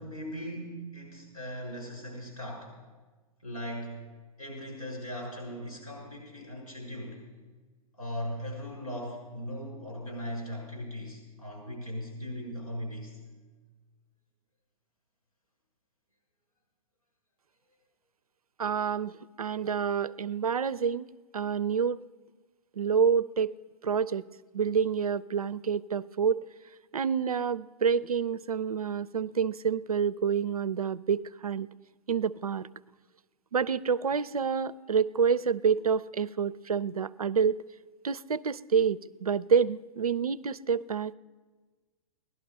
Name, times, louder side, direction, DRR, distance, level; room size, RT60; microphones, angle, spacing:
voice 1, 0.0-2.8 3.4-4.1 4.4-7.2 7.9-13.2, equal, 85° left, -1 dB, 6.2 m, -39 dB
voice 2, 18.6-22.0 22.8-23.5 23.8-24.2 24.5-26.4 26.9-31.7 32.1-32.7 33.5-37.6 38.0-41.1, right 6 dB, 85° right, 16 dB, 0.4 m, -28 dB
17.0 x 11.5 x 5.4 m, 1.3 s
figure-of-eight pair, 110°, 18 cm